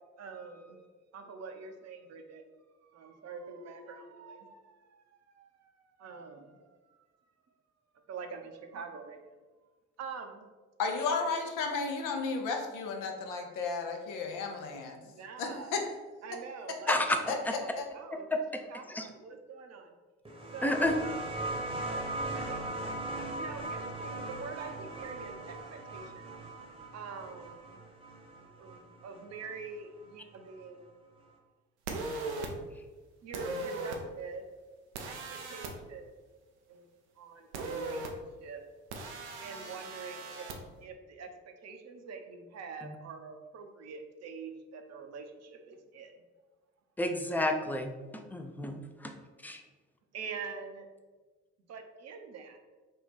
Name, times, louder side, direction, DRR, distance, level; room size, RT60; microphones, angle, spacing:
voice 1, 0.2-0.8 1.1-2.4 2.9-4.6 6.0-6.6 8.1-9.2 10.0-10.4 11.1-11.3 15.1-15.7 16.2-17.0 17.6-18.3 18.7-19.9 20.5-21.6 22.4-23.0 23.3-26.2 26.9-27.8 28.6-30.9 33.2-34.4 35.1-36.1 36.7-36.9 37.2-38.0 38.4-38.6 39.4-40.4 40.8-41.3 41.6-46.1 50.1-50.9 51.7-52.6, right 5 dB, 50° right, 5 dB, 0.6 m, -45 dB
voice 2, 10.8-15.0 15.4-15.9 16.7-16.9 17.3-17.9, left 4 dB, 70° left, 3 dB, 0.7 m, -34 dB
voice 3, 16.9-17.5 18.3-18.4 18.9-19.1 20.6-21.0 42.8-43.0 47.0-47.9 48.3-49.1 49.4-49.6, left 1 dB, 5° left, 5 dB, 0.5 m, -30 dB
sound 1, 20.3-29.5 30.7-30.8, right 2 dB, 15° right, 0.9 m, -39 dB
sound 2, 31.9-32.5 33.3-34.0 34.9-35.7 37.5-38.1 38.9-40.6, right 3 dB, 90° right, 0.5 m, -38 dB
3.6 x 2.2 x 4.1 m, 1.3 s
hypercardioid pair, 45°, 33 cm